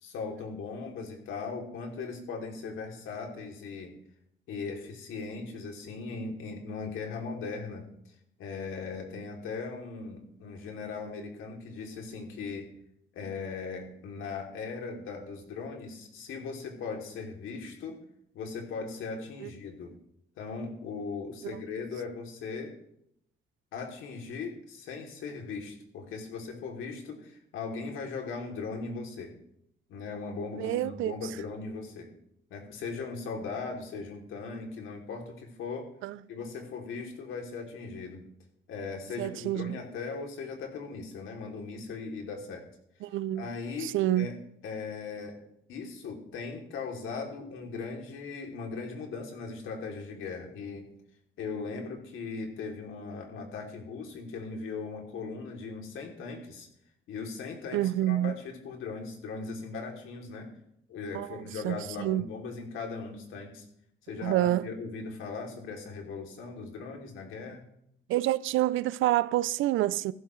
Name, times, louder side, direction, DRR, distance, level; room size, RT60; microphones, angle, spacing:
voice 1, 0.0-3.9 4.5-7.9 8.4-12.7 13.1-18.0 18.3-19.9 20.4-22.7 23.7-29.3 29.9-32.1 32.5-35.9 36.3-38.2 38.7-42.7 43.4-44.3 44.6-45.4 45.7-50.9 51.4-56.7 57.1-60.5 60.9-63.6 64.1-67.6, left 4 dB, 85° left, 2.9 m, -38 dB
voice 2, 30.6-31.1 36.0-36.2 39.2-39.8 43.0-43.5 43.8-44.3 57.7-58.3 61.1-62.2 64.2-64.7 68.1-70.1, right 14 dB, 80° right, 0.5 m, -28 dB
14.5 x 12.0 x 3.2 m
cardioid pair, 90°, 20 cm